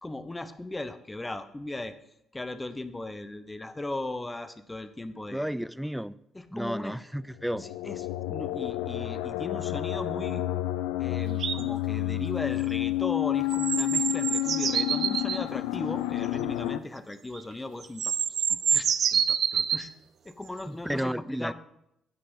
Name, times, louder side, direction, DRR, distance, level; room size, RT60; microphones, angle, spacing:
voice 1, 0.0-1.9 2.3-5.5 6.5-7.0 7.6-10.5 11.0-18.1 18.5-19.9 20.2-21.5, left 2 dB, 20° left, 10 dB, 0.9 m, -37 dB
voice 2, 5.3-6.1 6.5-7.6 20.7-21.5, equal, 5° right, 18 dB, 0.4 m, -32 dB
sound 1, 7.4-16.8, left 15 dB, 85° left, 0.3 m, -30 dB
sound 2, 11.4-11.6 13.5-15.4 17.3-17.4 17.8-19.8 21.0-21.1, right 8 dB, 60° right, 0.4 m, -27 dB
9.7 x 5.9 x 5.7 m, 0.79 s
hypercardioid pair, 55°, 0 cm